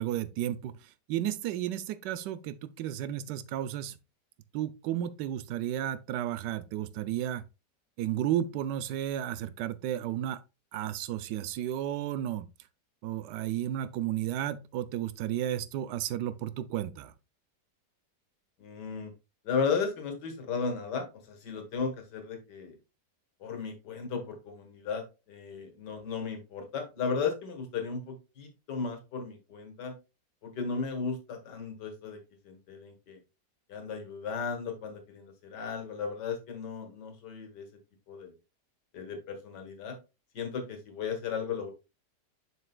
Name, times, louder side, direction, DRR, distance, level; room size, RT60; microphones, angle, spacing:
voice 1, 0.0-4.0 4.5-7.4 8.0-10.4 10.7-12.5 13.0-17.1, right 11 dB, 85° right, 1.2 m, -33 dB
voice 2, 18.6-19.1 19.4-22.8 23.4-29.9 30.4-32.2 32.4-33.2 33.7-37.7 38.1-38.3 38.9-40.0 40.3-41.7, left 5 dB, 80° left, 2.0 m, -35 dB
7.3 x 5.7 x 2.2 m
omnidirectional pair, 1.8 m